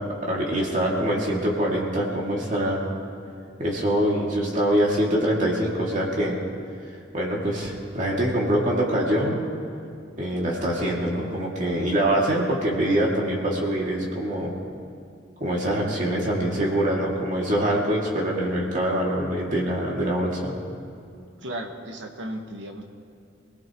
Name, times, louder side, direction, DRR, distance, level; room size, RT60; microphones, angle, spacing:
voice 1, 0.0-2.8 3.6-6.4 7.1-9.4 10.2-14.5 15.4-20.6, right 1 dB, 40° right, -3 dB, 2.4 m, -24 dB
voice 2, 21.4-22.8, right 1 dB, 70° right, 3 dB, 1.5 m, -35 dB
24.5 x 18.0 x 3.1 m, 2.4 s
head